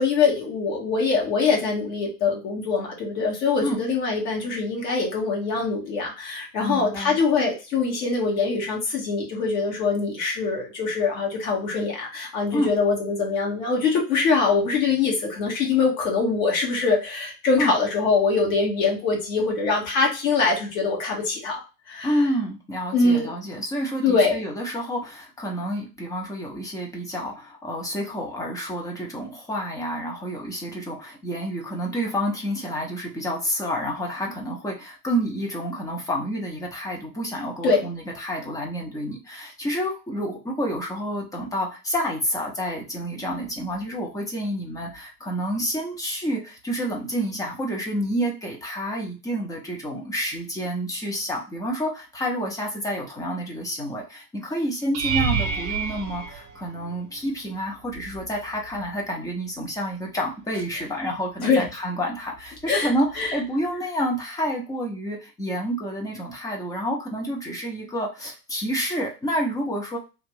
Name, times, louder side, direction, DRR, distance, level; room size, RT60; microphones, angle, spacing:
voice 1, 0.0-21.6 21.9-22.2 22.9-23.3 24.0-24.4 37.6-37.8 61.4-61.6 62.7-62.9 63.2-63.4, left 4 dB, 55° left, -1 dB, 1.6 m, -23 dB
voice 2, 6.6-7.2 12.5-12.7 17.6-17.7 22.0-70.0, equal, 5° left, -1 dB, 0.5 m, -29 dB
sound 1, 54.9-57.2 57.9-58.4 58.7-58.9 63.2-63.3, right 6 dB, 30° right, 0.8 m, -28 dB
3.0 x 2.5 x 3.1 m, 0.30 s
figure-of-eight pair, 95°, 50 cm